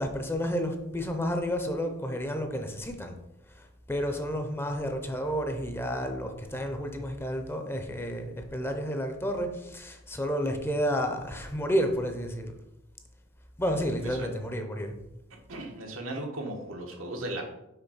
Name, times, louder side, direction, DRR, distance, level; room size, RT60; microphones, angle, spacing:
voice 1, 0.0-3.2 3.5-12.6 13.6-15.0, equal, 10° left, 5 dB, 0.6 m, -31 dB
voice 2, 14.0-14.3 15.5-17.4, right 1 dB, 90° right, 2 dB, 1.2 m, -36 dB
5.8 x 3.6 x 5.5 m, 0.87 s
head